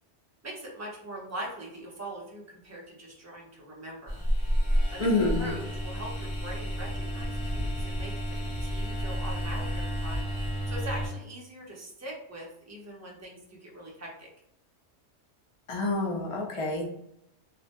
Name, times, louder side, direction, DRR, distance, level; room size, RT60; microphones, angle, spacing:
voice 1, 0.4-4.2 4.9-5.1 5.4-10.2 10.7-14.3, right 1 dB, 25° right, -3 dB, 0.3 m, -42 dB
sound 1, 4.1-11.1, equal, 30° left, 0.7 m, -30 dB
voice 2, 5.0-5.5 15.7-16.9, left 2 dB, 60° left, -1 dB, 0.3 m, -27 dB
2.2 x 2.1 x 2.7 m, 0.77 s
omnidirectional pair, 1.2 m